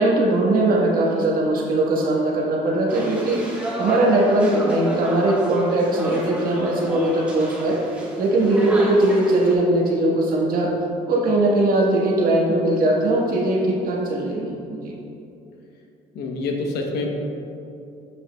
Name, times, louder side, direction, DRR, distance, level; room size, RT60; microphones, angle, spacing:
voice 1, 0.0-3.4 3.8-7.8 8.2-10.7 11.1-14.9, right 1 dB, 60° right, -2 dB, 1.4 m, -20 dB
sound 1, 2.9-9.5, right 1 dB, 5° right, 1.3 m, -33 dB
voice 2, 16.1-17.1, left 3 dB, 75° left, 1 dB, 1.0 m, -26 dB
7.9 x 7.2 x 2.3 m, 2.7 s
cardioid pair, 110°, 17 cm